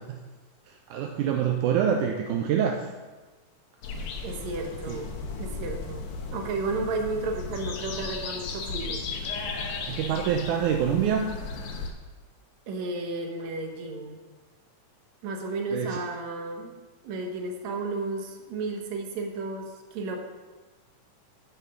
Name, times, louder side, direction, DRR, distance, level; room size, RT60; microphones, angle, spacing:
voice 1, 0.9-2.9 4.1-4.2 4.9-5.0 9.9-11.3 15.7-16.0, right 8 dB, 80° right, 2 dB, 2.1 m, -26 dB
sound 1, 3.8-11.9, left 4 dB, 75° left, 2.5 m, -35 dB
voice 2, 4.2-9.0 12.7-14.2 15.2-16.7 17.0-19.6 19.9-20.2, right 3 dB, 65° right, 2 dB, 2.4 m, -33 dB
9.7 x 6.1 x 6.6 m, 1.3 s
omnidirectional pair, 3.7 m